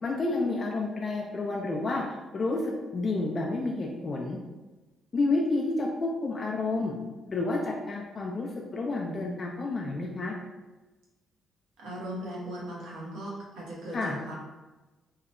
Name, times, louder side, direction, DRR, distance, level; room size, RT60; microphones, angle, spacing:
voice 1, 0.0-2.0 2.3-4.4 5.1-6.9 7.3-10.3 13.9-14.2, left 2 dB, 40° left, -1 dB, 0.3 m, -30 dB
voice 2, 11.8-14.3, right 1 dB, 90° right, -4 dB, 0.7 m, -38 dB
2.7 x 2.0 x 2.5 m, 1.2 s
cardioid pair, 90°, 0 cm